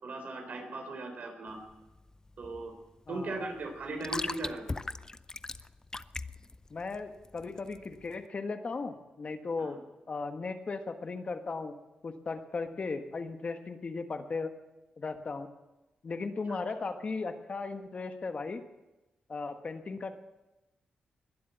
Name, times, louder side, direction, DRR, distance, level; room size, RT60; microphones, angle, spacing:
voice 1, 0.0-1.6 2.4-2.7 3.1-4.8 9.6-9.7 16.5-16.6, right 2 dB, 60° right, 4 dB, 4.0 m, -38 dB
sound 1, 1.5-8.2, left 3 dB, 20° left, 0.5 m, -41 dB
voice 2, 3.1-3.4 6.7-9.8 10.1-11.7 12.0-14.5 15.0-15.5 16.0-18.6 19.3-20.2, left 4 dB, 45° left, 7 dB, 1.4 m, -36 dB
21.0 x 7.7 x 8.0 m, 1.0 s
cardioid pair, 90°, 3 cm